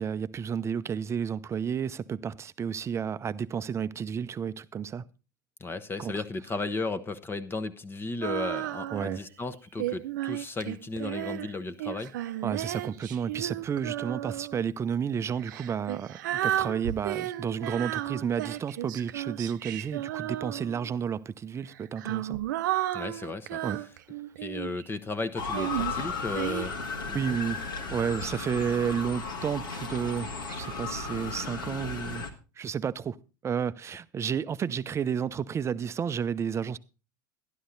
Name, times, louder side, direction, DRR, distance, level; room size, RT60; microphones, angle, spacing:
voice 1, 0.0-5.0 6.0-6.2 8.9-9.2 12.4-22.4 23.6-23.8 27.1-27.6 27.9-32.2 32.6-33.2 33.4-36.8, right 7 dB, 25° right, 0.7 m, -31 dB
voice 2, 5.6-12.3 22.9-23.6 24.4-26.8 27.1-27.4, left 3 dB, 20° left, 1.1 m, -35 dB
Female singing, 8.2-9.3 9.8-14.6 15.4-20.9 21.7-24.9 25.5-26.7, right 14 dB, 65° right, 0.6 m, -33 dB
Motor vehicle (road) / Siren, 25.4-32.3, left 4 dB, 75° left, 2.0 m, -35 dB
12.5 x 11.5 x 4.0 m
figure-of-eight pair, 75°, 11 cm